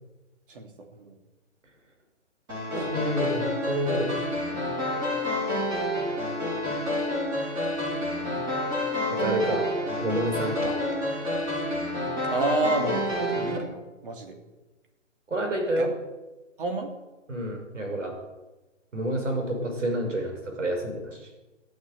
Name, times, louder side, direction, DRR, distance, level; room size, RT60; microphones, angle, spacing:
voice 1, 0.5-1.2 2.7-3.2 10.4-10.5 12.3-14.4 15.8-15.9 16.6-16.9, right 3 dB, 45° right, 3 dB, 3.1 m, -30 dB
sound 1, 2.5-13.6, left 1 dB, 10° right, 2.8 m, -29 dB
voice 2, 2.9-4.2 9.1-9.7 10.0-10.8 15.3-15.9 17.3-18.1 18.9-21.3, right 1 dB, 75° right, 4 dB, 6.4 m, -28 dB
14.0 x 10.0 x 9.5 m, 1.1 s
hypercardioid pair, 165°, 38 cm